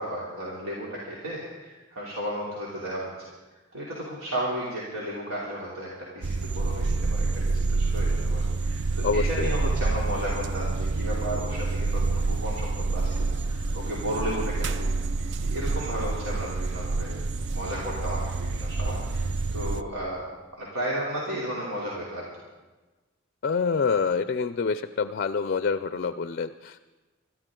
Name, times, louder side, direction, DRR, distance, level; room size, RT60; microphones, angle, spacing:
voice 1, 0.0-3.3 3.7-5.9 6.1-14.9 15.2-17.2 17.5-20.2 20.6-22.3, equal, 85° right, -6 dB, 3.1 m, -34 dB
sound 1, 6.2-19.8, right 3 dB, 60° right, 0.5 m, -28 dB
voice 2, 9.0-9.5 23.4-26.8, left 5 dB, 50° left, 12 dB, 0.4 m, -26 dB
25.0 x 13.0 x 3.8 m, 1.2 s
head